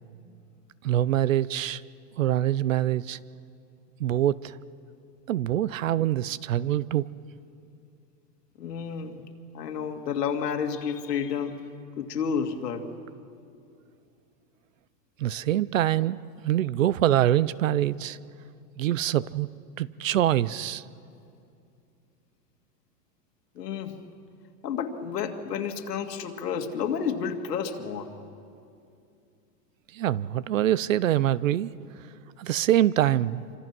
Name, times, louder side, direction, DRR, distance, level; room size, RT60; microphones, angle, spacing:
voice 1, 0.8-1.8 2.2-3.2 4.0-4.6 5.3-7.1 15.2-18.2 18.8-19.5 19.8-20.8 29.9-31.9 32.4-33.4, right 12 dB, 55° right, 20 dB, 0.6 m, -24 dB
voice 2, 8.6-9.3 9.5-11.6 12.0-12.9 23.5-23.9 24.6-28.1, left 7 dB, 85° left, 5 dB, 2.4 m, -30 dB
27.0 x 25.5 x 6.1 m, 2.5 s
supercardioid pair, 175°, 47 cm